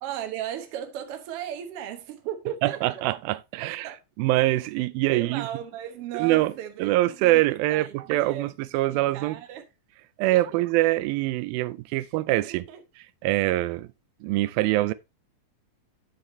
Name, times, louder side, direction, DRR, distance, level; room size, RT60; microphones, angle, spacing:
voice 1, 0.0-3.0 3.6-4.0 5.1-8.5 8.9-9.6 10.3-10.4 12.4-12.8, right 10 dB, 65° right, 1.5 m, -36 dB
voice 2, 2.6-5.5 6.1-6.5 6.8-9.4 10.2-12.7 13.0-13.9 14.2-14.9, right 17 dB, 90° right, 2.4 m, -24 dB
7.8 x 7.2 x 3.1 m
omnidirectional pair, 4.1 m